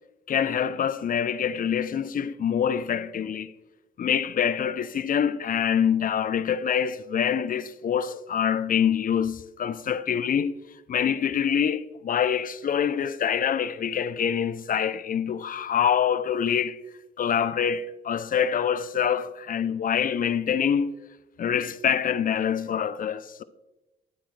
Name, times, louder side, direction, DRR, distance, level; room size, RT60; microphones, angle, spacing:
voice 1, 0.3-3.5 4.0-10.6 10.9-16.8 17.2-21.0 21.4-23.4, left 8 dB, 45° left, 0.5 m, -25 dB
10.5 x 8.4 x 3.2 m
cardioid pair, 90°, 20 cm